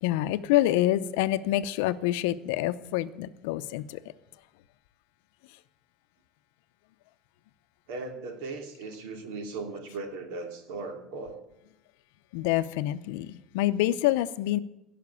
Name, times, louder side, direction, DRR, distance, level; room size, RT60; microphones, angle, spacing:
voice 1, 0.0-4.0 12.3-14.6, left 14 dB, 80° left, 0.7 m, -27 dB
voice 2, 7.9-11.4, right 3 dB, 85° right, 2.6 m, -38 dB
17.0 x 5.9 x 8.4 m
cardioid pair, 180°, 0 cm